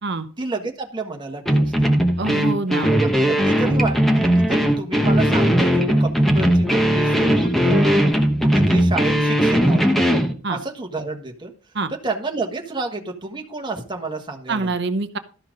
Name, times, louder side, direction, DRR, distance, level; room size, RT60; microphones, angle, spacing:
voice 1, 0.4-1.9 2.7-8.0 8.4-10.1 10.5-11.5 12.0-14.7, right 3 dB, 20° right, 2 dB, 1.4 m, -30 dB
sound 1, 1.5-10.3, equal, ahead, 1.0 m, -18 dB
voice 2, 2.2-3.0 10.4-10.6 11.7-11.9 14.5-15.2, right 3 dB, 55° right, 9 dB, 0.8 m, -25 dB
13.0 x 5.8 x 5.2 m, 0.39 s
head